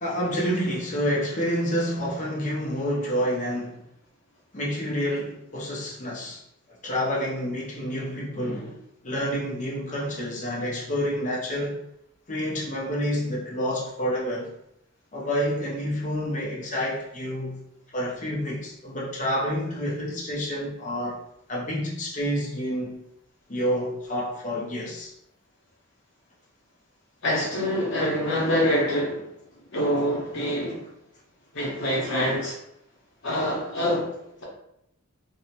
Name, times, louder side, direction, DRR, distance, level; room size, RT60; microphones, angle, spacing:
voice 1, 0.0-3.8 4.5-6.4 6.8-8.8 9.0-11.8 12.3-14.5 15.1-17.6 17.9-21.2 21.5-23.0 23.5-25.1, equal, 35° left, 0.6 m, -28 dB
voice 2, 27.2-29.2 29.7-30.8 31.5-32.5 33.2-34.1, equal, 60° left, 0.9 m, -25 dB
2.7 x 2.0 x 2.8 m
head